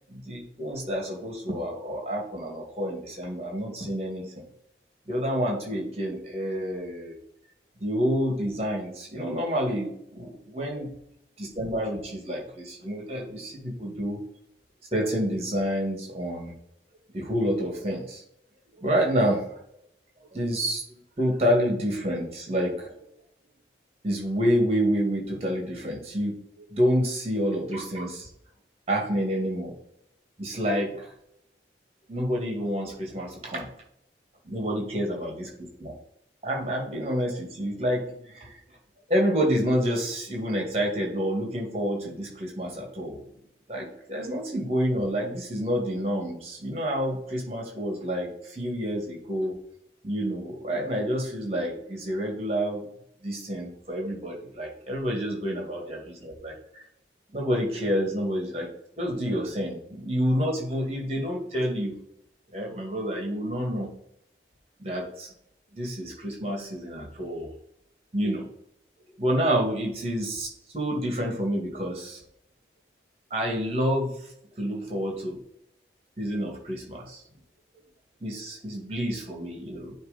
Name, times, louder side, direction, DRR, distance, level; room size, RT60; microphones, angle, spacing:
voice 1, 0.1-4.2 5.1-7.1 7.8-10.9 11.4-14.2 14.9-16.5 17.1-18.2 18.8-19.4 20.3-22.9 24.0-28.3 28.9-29.7 30.4-31.1 32.1-33.7 34.4-35.5 35.8-35.9 36.4-38.6 39.1-43.2 43.7-49.6 50.0-52.9 53.2-56.8 57.3-58.7 59.0-61.9 62.5-63.9 64.8-65.3 65.7-67.5 68.1-68.5 69.2-70.5 70.7-72.2 73.3-74.1 74.6-75.4 76.2-77.2 78.2-79.9, equal, 35° right, -1 dB, 2.4 m, -28 dB
9.5 x 3.3 x 5.3 m, 0.72 s
head